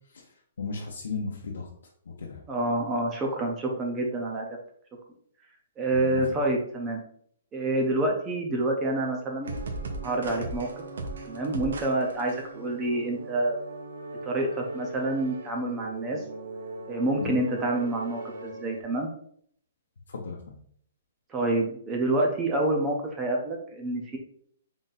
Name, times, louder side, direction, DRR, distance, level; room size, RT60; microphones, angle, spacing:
voice 1, 0.6-1.7 2.1-2.4 5.9-6.2 17.2-17.4 20.1-20.6, left 4 dB, 85° left, -1 dB, 0.7 m, -35 dB
voice 2, 2.5-4.5 5.8-7.0 7.5-9.6 10.0-10.8 11.2-13.6 14.2-16.2 16.9-19.1 21.3-24.2, right 2 dB, 10° right, 1 dB, 0.5 m, -28 dB
sound 1, 9.4-18.8, right 2 dB, 85° right, 0.8 m, -38 dB
3.7 x 2.5 x 4.0 m, 0.63 s
hypercardioid pair, 175°, 0 cm